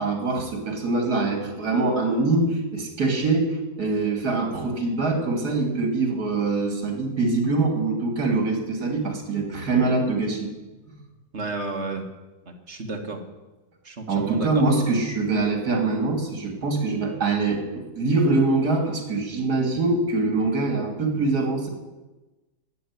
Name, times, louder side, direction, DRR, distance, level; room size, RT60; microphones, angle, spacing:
voice 1, 0.0-10.5 10.9-11.0 14.1-21.7, right 3 dB, 70° right, 4 dB, 3.3 m, -24 dB
voice 2, 11.3-12.1 12.7-13.2 13.9-14.5, right 3 dB, 45° right, 3 dB, 1.8 m, -31 dB
15.0 x 7.1 x 9.7 m, 1.1 s
omnidirectional pair, 1.7 m